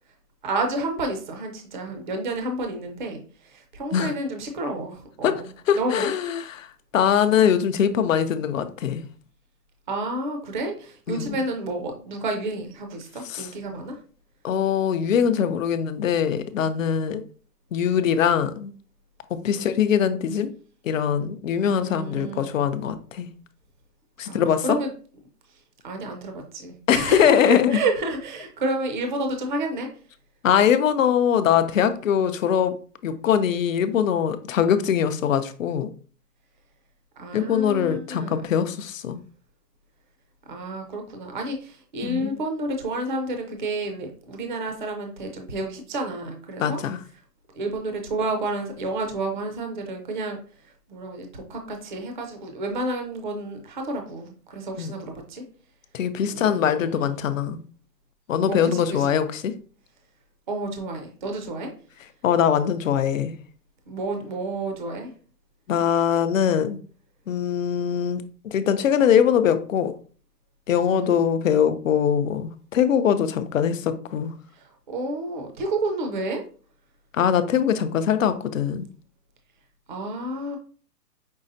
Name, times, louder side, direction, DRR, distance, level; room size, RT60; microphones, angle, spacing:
voice 1, 0.4-6.1 9.9-14.0 19.5-19.7 21.7-22.5 24.2-24.9 25.8-29.9 37.2-38.4 40.5-46.8 47.5-50.4 50.9-55.4 56.3-57.2 58.5-59.2 60.5-61.7 63.9-65.1 70.9-71.2 74.5-76.4 79.9-80.6, right 2 dB, 30° right, 0.5 m, -30 dB
voice 2, 5.7-6.7 6.9-9.0 11.1-11.4 13.3-13.5 14.4-17.2 17.7-18.7 19.4-20.5 20.8-23.3 24.2-24.8 26.9-27.8 30.4-32.7 33.0-35.9 37.3-39.2 42.0-42.3 46.6-47.0 54.8-54.9 55.9-57.6 58.3-59.5 62.2-63.3 65.7-66.8 67.3-69.9 70.7-74.3 77.1-78.9, left 8 dB, 55° left, 0.6 m, -22 dB
5.4 x 3.2 x 2.6 m
hypercardioid pair, 160°, 48 cm